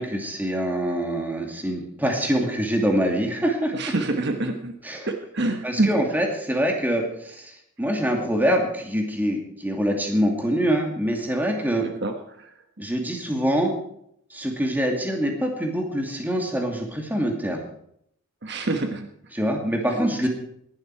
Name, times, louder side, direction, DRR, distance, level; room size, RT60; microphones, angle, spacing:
voice 1, 0.0-3.7 4.8-5.1 5.6-11.9 12.8-13.7 14.3-17.6 19.3-20.3, equal, 10° right, 2 dB, 2.5 m, -25 dB
voice 2, 3.7-4.7 5.0-6.0 11.8-12.5 18.4-19.1, right 2 dB, 50° right, 5 dB, 1.2 m, -26 dB
19.0 x 12.0 x 4.8 m, 0.72 s
head